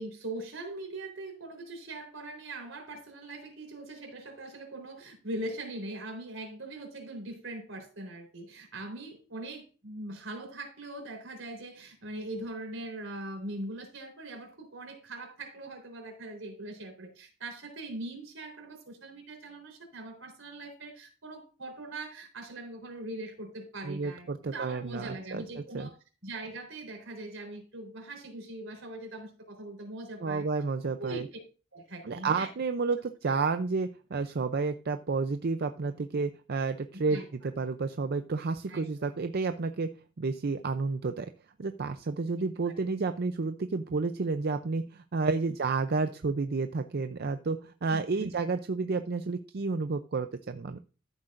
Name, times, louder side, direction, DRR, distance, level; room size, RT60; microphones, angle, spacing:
voice 1, 0.0-24.3 24.5-26.0 26.2-30.4 31.0-31.4 31.7-32.5 37.1-37.3 38.7-38.9 47.9-48.3, right 2 dB, 80° right, 3.9 m, -41 dB
voice 2, 23.9-25.9 30.2-31.2 32.0-37.2 37.6-39.9 40.2-41.3 41.6-50.8, right 4 dB, 55° right, 0.5 m, -31 dB
14.0 x 7.8 x 2.5 m
head